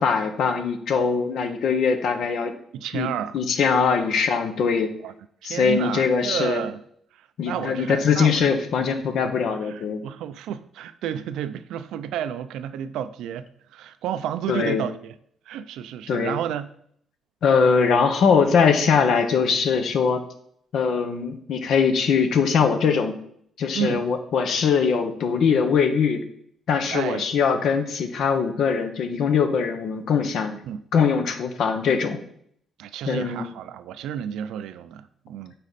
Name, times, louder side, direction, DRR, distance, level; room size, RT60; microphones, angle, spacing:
voice 1, 0.0-2.5 2.9-3.1 3.3-4.9 5.4-6.6 7.4-10.0 14.5-14.9 16.1-16.4 17.4-20.2 20.7-23.1 23.6-26.2 26.7-30.6 30.9-32.2 33.1-33.5, left 6 dB, 70° left, 1.0 m, -21 dB
voice 2, 2.7-3.3 5.0-5.1 5.4-6.8 7.1-8.6 9.5-15.1 15.5-16.7 23.7-24.1 26.9-27.3 30.6-30.8 32.8-35.5, right 9 dB, 85° right, 0.4 m, -31 dB
9.7 x 4.2 x 4.1 m
cardioid pair, 90°, 0 cm